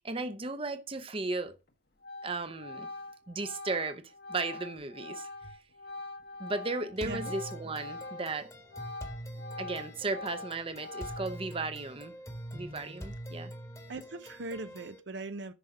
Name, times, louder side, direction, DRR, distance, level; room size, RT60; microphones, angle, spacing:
voice 1, 0.0-1.5 2.2-2.9 3.3-4.0 4.3-5.6 6.4-8.5 9.6-12.1 12.5-13.5, right 3 dB, 30° right, 0.8 m, -35 dB
Organ, 1.5-1.7 2.0-8.4 8.6-11.5, left 2 dB, 50° left, 1.2 m, -44 dB
sound 1, 7.0-15.0, equal, 15° left, 1.3 m, -44 dB
voice 2, 7.0-7.3 13.9-15.5, right 2 dB, 65° right, 0.7 m, -40 dB
10.0 x 5.8 x 4.8 m
head